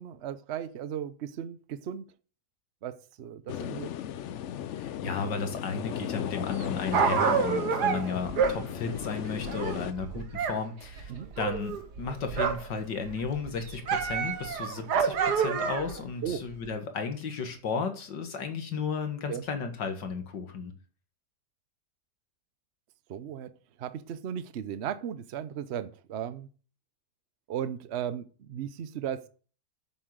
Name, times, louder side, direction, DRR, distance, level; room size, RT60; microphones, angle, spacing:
voice 1, 0.0-2.0 2.8-3.9 10.1-10.2 11.1-11.3 16.2-16.5 19.3-19.4 23.1-23.5 23.8-26.5 27.5-29.3, right 9 dB, 50° right, 0.8 m, -36 dB
sound 1, 3.5-9.9, left 10 dB, 70° left, 0.6 m, -36 dB
voice 2, 4.7-11.1 11.4-20.7, left 5 dB, 85° left, 2.2 m, -34 dB
Dog, 6.5-10.6 10.8-12.8 13.1-16.0 16.6-16.7, right 6 dB, 70° right, 1.7 m, -29 dB
8.5 x 7.6 x 6.6 m
omnidirectional pair, 1.9 m